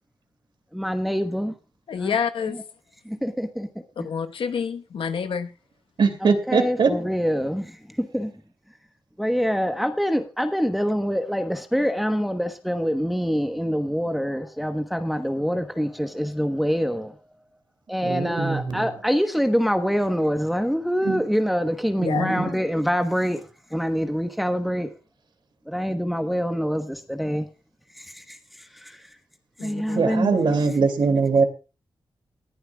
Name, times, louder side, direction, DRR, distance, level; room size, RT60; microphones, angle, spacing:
voice 1, 0.7-1.5 2.0-2.2 2.5-2.6 3.1-3.7 4.0-4.1 6.2-8.3 9.2-17.1 17.9-23.4 23.7-24.9 25.7-27.4 28.0-28.4 28.8-29.0 29.6-30.3, equal, ahead, 1.2 m, -25 dB
voice 2, 1.9-2.6 4.0-5.5 22.0-22.3 29.6-30.0, left 7 dB, 80° left, 1.2 m, -28 dB
voice 3, 6.0-6.9 18.0-18.9 21.0-21.2 22.0-22.5 29.9-31.4, right 4 dB, 60° right, 2.6 m, -22 dB
20.5 x 11.0 x 2.3 m
cardioid pair, 90°, 9 cm